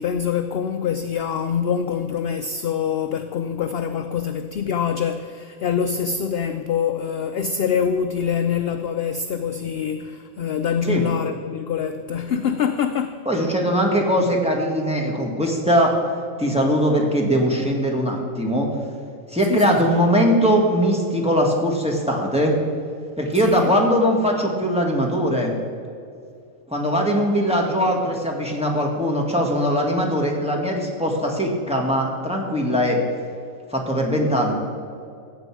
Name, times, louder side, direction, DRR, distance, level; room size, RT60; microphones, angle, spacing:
voice 1, 0.0-13.2 19.4-20.0 23.3-23.7, left 7 dB, 60° left, 8 dB, 0.7 m, -25 dB
voice 2, 13.2-15.9 16.4-18.7 19.3-22.5 23.2-25.5 26.7-33.0 33.7-34.5, equal, 5° right, -1 dB, 1.7 m, -21 dB
14.5 x 8.2 x 4.8 m, 2.4 s
omnidirectional pair, 1.4 m